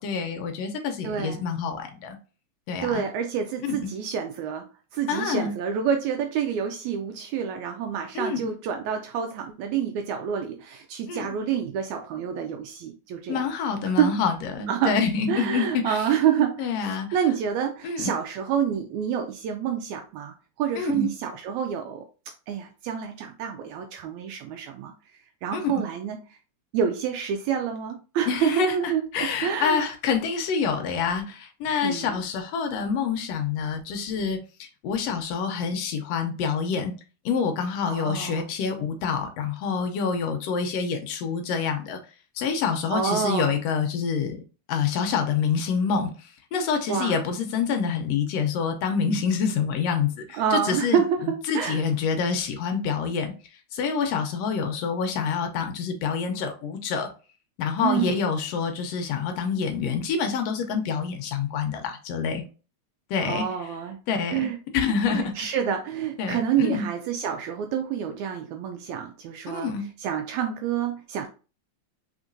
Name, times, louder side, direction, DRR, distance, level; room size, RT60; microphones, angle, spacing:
voice 1, 0.0-2.2 2.7-3.0 3.7-3.9 5.1-5.5 8.2-8.4 11.1-11.3 13.3-16.0 16.6-17.1 17.8-18.1 20.8-21.1 25.5-25.8 28.3-28.8 29.1-36.9 37.3-42.0 42.4-44.4 44.7-46.1 46.5-51.0 51.5-53.3 53.7-57.1 57.6-62.4 63.1-63.5 64.1-64.5 64.7-65.5 66.2-66.9 69.5-69.9, left 6 dB, 75° left, 5 dB, 1.6 m, -27 dB
voice 2, 1.0-1.4 2.8-4.7 4.9-13.5 14.0-14.2 14.7-15.0 15.3-22.0 22.5-24.9 25.4-26.2 26.7-29.1 29.4-29.9 31.8-32.2 37.8-38.5 42.9-43.5 46.9-47.2 50.3-51.8 57.8-58.2 63.2-64.0 64.3-64.6 65.1-69.7 70.0-71.3, right 8 dB, 80° right, 5 dB, 1.8 m, -28 dB
4.8 x 3.6 x 2.6 m, 0.34 s
omnidirectional pair, 3.4 m